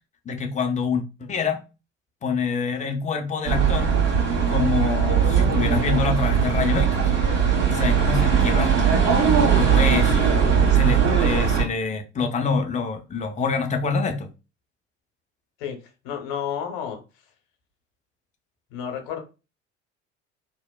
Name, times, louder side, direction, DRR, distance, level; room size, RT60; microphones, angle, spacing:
voice 1, 0.3-1.6 2.2-4.0 4.5-7.1 7.7-8.7 9.5-10.3 10.7-14.3, left 5 dB, 20° left, 0.5 m, -26 dB
sound 1, 3.4-11.6, right 7 dB, 45° right, 1.4 m, -19 dB
voice 2, 16.0-17.0 18.7-19.2, left 8 dB, 65° left, 0.9 m, -30 dB
2.8 x 2.0 x 2.2 m
figure-of-eight pair, 65°, 36 cm